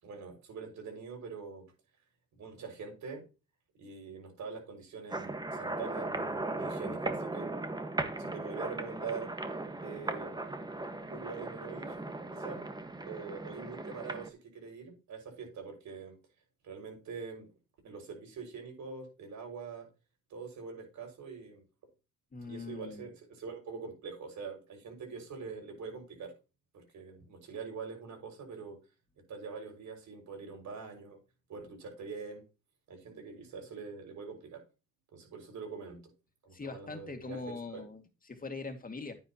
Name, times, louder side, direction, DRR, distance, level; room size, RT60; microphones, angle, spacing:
voice 1, 0.0-1.7 2.3-3.2 3.8-7.7 8.2-9.3 9.8-10.4 11.1-12.0 12.3-12.7 13.0-16.2 16.6-17.5 17.8-19.9 20.3-21.6 22.4-26.3 26.7-28.8 29.3-31.2 31.5-32.4 32.9-34.6 35.1-36.0 36.4-37.4 37.7-37.8, right 5 dB, 70° right, 2 dB, 6.4 m, -44 dB
sound 1, 5.1-14.3, right 2 dB, 15° right, 1.6 m, -37 dB
voice 2, 22.3-23.1 36.5-39.2, left 3 dB, 30° left, 6 dB, 2.4 m, -42 dB
10.0 x 9.6 x 3.1 m, 0.30 s
cardioid pair, 90°, 30 cm